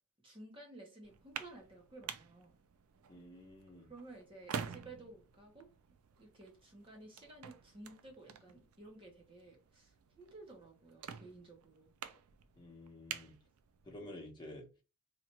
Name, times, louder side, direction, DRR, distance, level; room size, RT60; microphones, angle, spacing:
voice 1, 0.2-2.5 3.8-5.7 6.2-11.9, right 2 dB, 25° right, 0.8 m, -54 dB
sound 1, 1.0-14.1, right 7 dB, 85° right, 0.4 m, -49 dB
voice 2, 3.1-3.9 12.6-13.3 13.8-14.7, left 1 dB, 20° left, 0.9 m, -50 dB
2.9 x 2.4 x 4.2 m
head